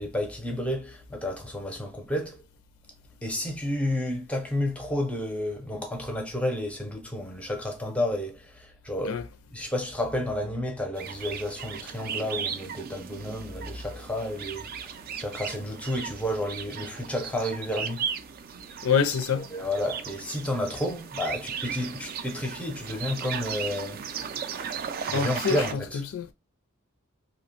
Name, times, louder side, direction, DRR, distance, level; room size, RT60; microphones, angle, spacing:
voice 1, 0.0-2.4 3.2-9.2 9.5-18.1 19.4-24.0 25.0-26.0, left 1 dB, 5° left, 0.5 m, -31 dB
sound 1, 10.9-25.7, right 7 dB, 45° right, 0.3 m, -36 dB
voice 2, 18.8-19.5 25.1-26.3, left 6 dB, 75° left, 0.4 m, -26 dB
2.7 x 2.1 x 2.8 m
head